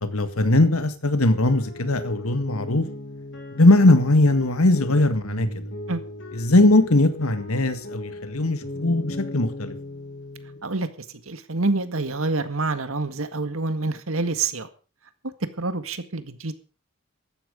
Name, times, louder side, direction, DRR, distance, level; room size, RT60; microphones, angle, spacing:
voice 1, 0.0-2.9 3.5-5.6 6.3-9.8, left 2 dB, 85° left, 11 dB, 1.8 m, -20 dB
sound 1, 1.4-10.7, left 1 dB, 55° left, 4.2 m, -37 dB
voice 2, 11.3-14.7 15.6-16.5, right 3 dB, 75° right, 10 dB, 1.9 m, -27 dB
15.0 x 12.5 x 5.2 m, 0.36 s
head